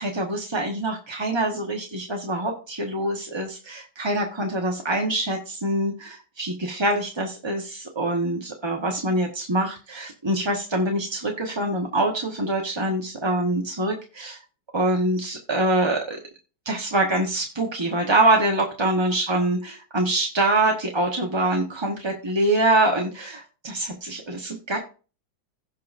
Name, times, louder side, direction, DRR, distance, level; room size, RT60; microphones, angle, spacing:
voice 1, 0.0-14.4 14.7-16.2 16.6-24.8, right 2 dB, 20° right, 1 dB, 0.8 m, -24 dB
16.5 x 5.7 x 2.5 m, 0.35 s
omnidirectional pair, 2.0 m